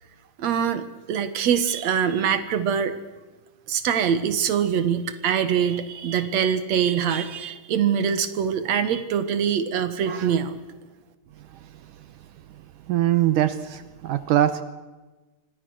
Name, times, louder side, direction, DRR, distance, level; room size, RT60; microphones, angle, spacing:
voice 1, 0.4-2.9 3.7-10.6, right 8 dB, 55° right, 11 dB, 2.5 m, -24 dB
voice 2, 12.9-14.6, right 12 dB, 75° right, 12 dB, 2.3 m, -22 dB
26.5 x 24.5 x 6.4 m, 1.2 s
omnidirectional pair, 4.0 m